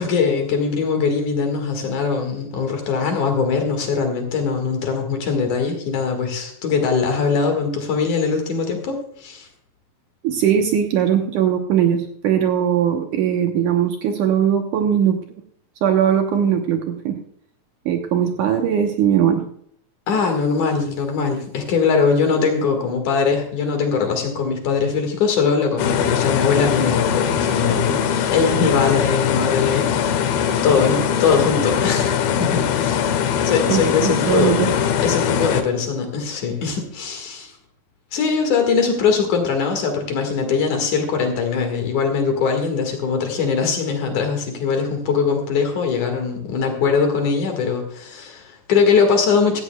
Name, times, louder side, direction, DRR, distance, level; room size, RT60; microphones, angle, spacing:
voice 1, 0.0-9.5 20.1-34.6 35.0-37.5 38.1-49.6, left 5 dB, 60° left, 4 dB, 3.0 m, -21 dB
voice 2, 10.2-15.2 15.8-17.2 17.9-19.4 33.7-34.7, right 9 dB, 70° right, 4 dB, 2.1 m, -19 dB
sound 1, 25.8-35.6, left 8 dB, 85° left, 2.9 m, -21 dB
16.5 x 14.0 x 2.3 m, 0.64 s
omnidirectional pair, 4.3 m